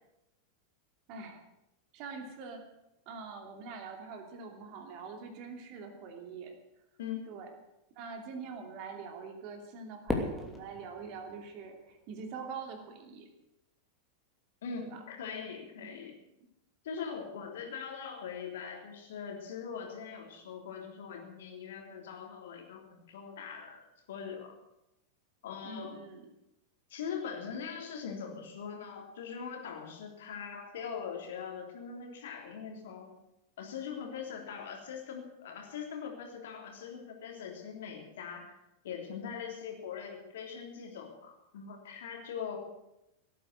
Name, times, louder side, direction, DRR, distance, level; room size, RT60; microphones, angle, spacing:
voice 1, 1.1-1.4 1.9-2.7 3.1-6.5 7.3-7.5 8.0-13.3 14.8-15.0 15.8-15.9 25.6-26.3, right 5 dB, 40° right, 4 dB, 2.7 m, -44 dB
voice 2, 7.0-7.3 14.6-16.1 16.8-24.5 25.4-26.0 26.9-33.1 33.6-38.6 38.8-42.6, left 6 dB, 60° left, 2 dB, 3.4 m, -41 dB
Fireworks, 10.1-12.4, left 2 dB, 5° left, 2.8 m, -37 dB
17.5 x 9.2 x 8.0 m, 0.89 s
figure-of-eight pair, 90°, 0 cm